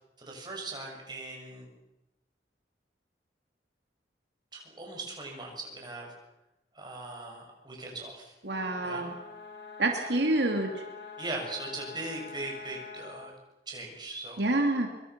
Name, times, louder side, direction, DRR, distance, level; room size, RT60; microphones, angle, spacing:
voice 1, 0.2-1.7 4.5-6.1 6.7-8.3 8.8-9.0 11.2-13.3 13.7-14.4, right 2 dB, 25° right, 0 dB, 6.8 m, -39 dB
voice 2, 8.4-9.1 9.8-10.8 14.4-14.9, right 2 dB, 80° right, 3 dB, 2.7 m, -27 dB
sound 1, 8.5-13.3, left 5 dB, 80° left, 4.4 m, -45 dB
25.0 x 23.5 x 6.1 m, 0.92 s
head